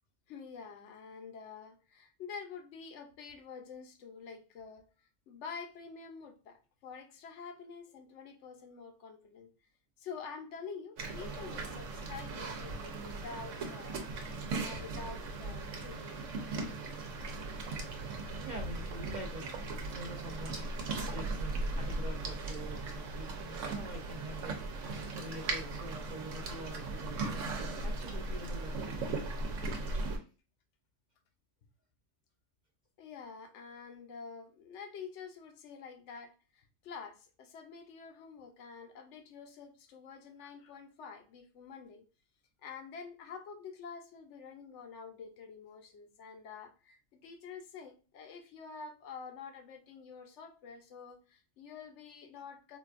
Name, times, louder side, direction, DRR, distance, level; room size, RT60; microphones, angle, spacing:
voice 1, 0.3-4.9 5.3-9.5 10.0-14.0 14.6-16.2 33.0-42.0 42.6-52.8, left 5 dB, 75° left, 5 dB, 1.0 m, -48 dB
sound 1, 11.0-30.2, right 3 dB, 85° right, 1.1 m, -38 dB
voice 2, 18.4-19.6 19.9-20.7 21.1-24.6 25.2-29.0, right 2 dB, 50° right, 1 dB, 0.6 m, -45 dB
4.0 x 2.3 x 2.4 m, 0.33 s
omnidirectional pair, 1.3 m